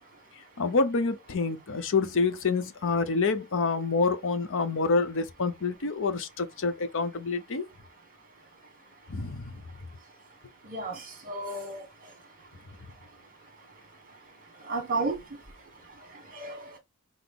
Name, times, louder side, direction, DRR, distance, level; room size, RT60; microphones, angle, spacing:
voice 1, 0.6-7.7 9.1-9.6, left 4 dB, 65° left, 0.7 m, -27 dB
voice 2, 10.6-11.8 14.7-15.2 16.3-16.7, right 3 dB, 40° right, 1.5 m, -32 dB
5.8 x 2.0 x 3.6 m
head